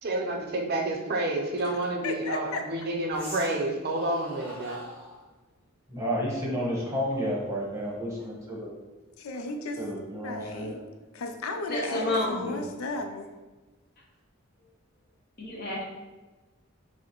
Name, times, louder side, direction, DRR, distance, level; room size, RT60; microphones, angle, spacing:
voice 1, 0.0-4.8, right 2 dB, 50° right, 1 dB, 0.5 m, -29 dB
sound 1, 1.4-1.5 3.1-3.6 3.9-5.3 6.9-8.5, left 1 dB, 10° left, 1.1 m, -44 dB
voice 2, 1.6-2.6 9.2-9.9 10.1-10.8 11.1-13.3, left 2 dB, 80° left, 5 dB, 0.4 m, -35 dB
voice 3, 5.9-8.7 9.8-10.7 12.4-12.6, equal, 15° right, -4 dB, 0.9 m, -31 dB
voice 4, 11.7-12.4 15.4-15.8, left 1 dB, 45° left, -2 dB, 0.9 m, -29 dB
6.2 x 2.1 x 3.0 m, 1.2 s
head